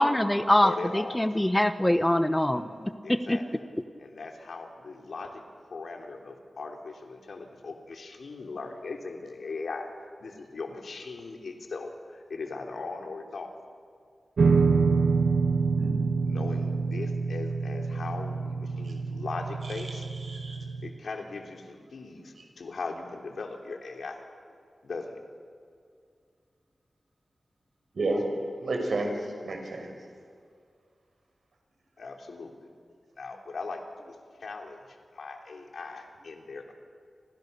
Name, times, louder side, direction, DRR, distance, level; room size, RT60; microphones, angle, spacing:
voice 1, 0.0-2.6 3.1-3.4, left 1 dB, 15° left, 10 dB, 1.1 m, -23 dB
voice 2, 0.6-1.4 3.0-3.7 4.0-5.4 5.7-9.9 10.2-13.5 16.2-20.0 20.8-24.2 24.8-25.2 32.0-32.7 33.2-34.8 35.1-36.7, left 3 dB, 80° left, 3 dB, 3.4 m, -39 dB
sound 1, 14.4-20.9, right 4 dB, 85° right, 1.2 m, -26 dB
voice 3, 20.3-20.6 27.9-28.3 28.6-29.1 29.4-29.9, right 2 dB, 70° right, 3 dB, 5.9 m, -31 dB
29.5 x 27.0 x 6.9 m, 2.2 s
wide cardioid pair, 85°, 0 cm